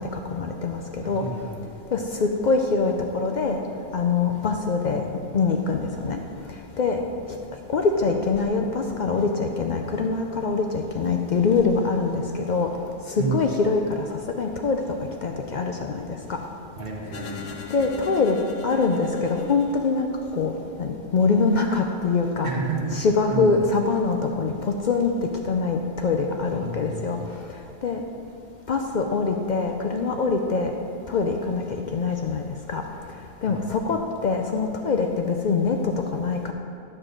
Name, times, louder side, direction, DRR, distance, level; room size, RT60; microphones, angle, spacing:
voice 1, 0.3-0.8 1.0-1.2 1.9-3.6 3.9-5.0 5.3-6.2 6.8-7.0 7.7-12.7 13.1-14.8 15.2-16.0 16.3-16.4 17.7-18.4 18.6-20.1 20.3-20.5 20.8-22.5 22.9-25.1 25.5-27.2 27.8-28.0 28.7-30.7 31.1-32.4 32.7-32.8 33.4-36.5, left 4 dB, 55° left, 3 dB, 0.6 m, -24 dB
voice 2, 1.0-1.5 4.8-4.9 13.2-13.4 16.8-17.5 22.4-23.0 23.3-23.5 26.5-27.1 33.4-33.7, right 4 dB, 60° right, 1 dB, 1.2 m, -30 dB
sound 1, 17.1-20.5, left 4 dB, 90° left, 1.0 m, -39 dB
9.1 x 4.4 x 6.5 m, 2.5 s
omnidirectional pair, 1.1 m